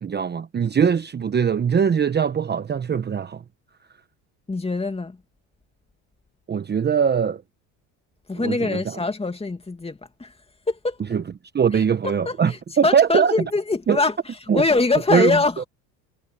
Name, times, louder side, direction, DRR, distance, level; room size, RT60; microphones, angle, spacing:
voice 1, 0.0-3.4 6.5-7.4 8.3-9.0 11.1-11.2 11.5-13.3 13.9-14.0 14.5-14.6 15.1-15.4, right 7 dB, 25° right, 1.0 m, -21 dB
voice 2, 4.5-5.2 8.3-10.3 10.7-11.0 11.7-14.2 14.5-15.7, left 3 dB, 15° left, 2.5 m, -23 dB
supercardioid pair, 100°, 40 cm